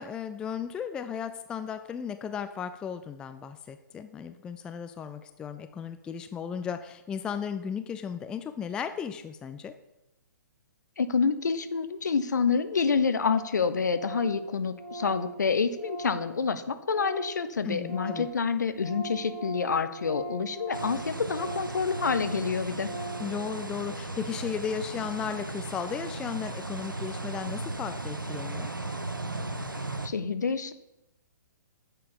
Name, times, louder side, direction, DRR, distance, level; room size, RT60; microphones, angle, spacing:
voice 1, 0.0-9.7 17.6-18.3 23.2-28.7, left 7 dB, 10° left, 9 dB, 0.3 m, -35 dB
voice 2, 11.0-22.9 30.0-30.7, left 5 dB, 60° left, 11 dB, 0.9 m, -28 dB
Organ, 12.5-12.6 12.8-12.9 13.2-13.6 13.8-17.4 17.7-23.4, right 1 dB, 25° left, 3.5 m, -40 dB
sound 1, 20.7-30.1, right 2 dB, 85° right, 0.9 m, -36 dB
9.9 x 6.7 x 6.9 m, 0.91 s
figure-of-eight pair, 125°, 11 cm